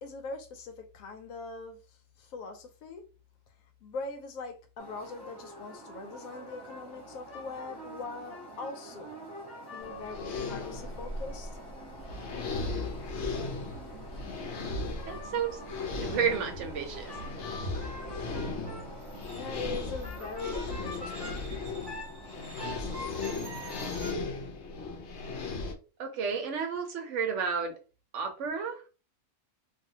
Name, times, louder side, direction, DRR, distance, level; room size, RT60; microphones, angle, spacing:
voice 1, 0.0-3.0 3.8-9.1 9.7-11.6 19.3-21.8 22.6-23.1, left 4 dB, 85° left, 1.0 m, -42 dB
sound 1, 4.8-24.1, right 1 dB, 20° right, 0.9 m, -45 dB
sound 2, 9.8-25.7, left 3 dB, 65° left, 0.8 m, -37 dB
voice 2, 15.1-15.6 16.0-17.2 26.0-27.7 28.1-28.8, right 6 dB, 65° right, 0.9 m, -31 dB
2.6 x 2.4 x 2.7 m
omnidirectional pair, 1.4 m